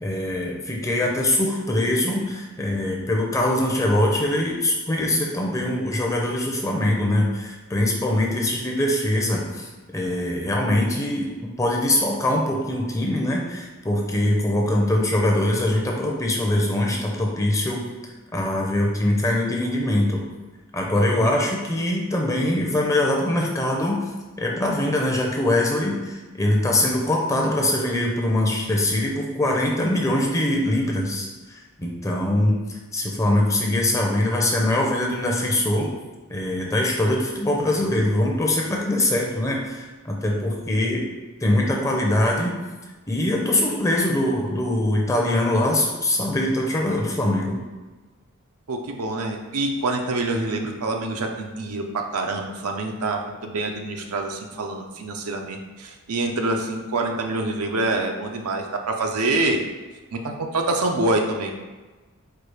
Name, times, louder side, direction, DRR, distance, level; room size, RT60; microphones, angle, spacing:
voice 1, 0.0-11.3 11.6-17.9 18.3-20.2 20.7-24.0 24.4-35.9 36.3-41.0 41.4-42.5 43.1-47.6, left 1 dB, 15° left, -1 dB, 0.6 m, -23 dB
voice 2, 48.7-59.6 60.1-61.5, right 2 dB, 90° right, 3 dB, 0.6 m, -26 dB
4.6 x 2.4 x 4.8 m, 1.2 s
head